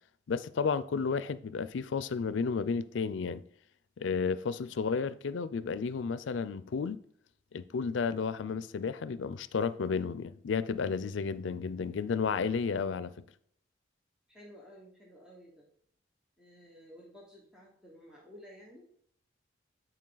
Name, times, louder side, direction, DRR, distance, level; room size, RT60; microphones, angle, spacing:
voice 1, 0.3-3.4 4.0-7.0 7.5-13.1, left 5 dB, 85° left, 0.4 m, -32 dB
voice 2, 14.3-15.7 16.4-18.9, equal, 5° right, 1.2 m, -54 dB
10.0 x 4.5 x 3.9 m
head